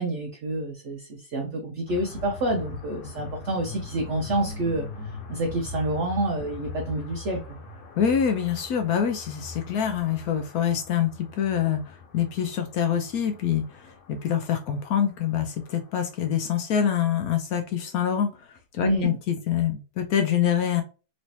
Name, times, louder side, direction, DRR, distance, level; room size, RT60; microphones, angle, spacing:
voice 1, 0.0-4.9 5.3-7.6 18.8-19.2, right 1 dB, 60° right, 2 dB, 0.8 m, -28 dB
sound 1, 1.9-15.8, left 4 dB, 90° left, 1.5 m, -41 dB
voice 2, 8.0-18.5 18.7-20.8, left 9 dB, 70° left, 5 dB, 1.0 m, -25 dB
3.1 x 3.1 x 2.7 m, 0.33 s
omnidirectional pair, 1.8 m